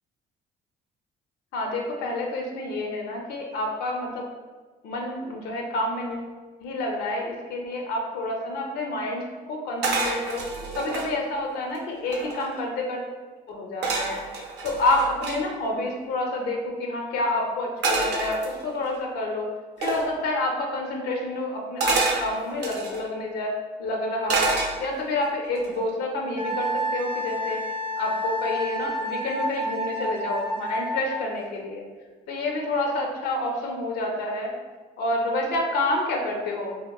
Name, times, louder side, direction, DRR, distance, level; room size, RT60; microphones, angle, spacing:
voice 1, 1.5-4.3 4.8-6.3 6.6-10.4 10.8-13.0 13.5-14.2 14.6-19.5 19.8-23.5 23.8-24.5 24.8-27.6 28.0-31.8 32.3-34.6 35.0-36.8, left 2 dB, 75° left, 1 dB, 0.5 m, -28 dB
sound 1, 9.8-11.1 11.7-11.8 12.0-12.6 13.8-15.4 17.8-18.9 19.8-20.1 21.8-23.0 24.3-25.1 25.6-25.9, right 3 dB, 85° right, 0.5 m, -27 dB
Wind instrument woodwind instrument, 26.4-31.2, equal, 30° right, 0.5 m, -29 dB
2.8 x 2.0 x 2.3 m, 1.4 s
cardioid pair, 110°, 17 cm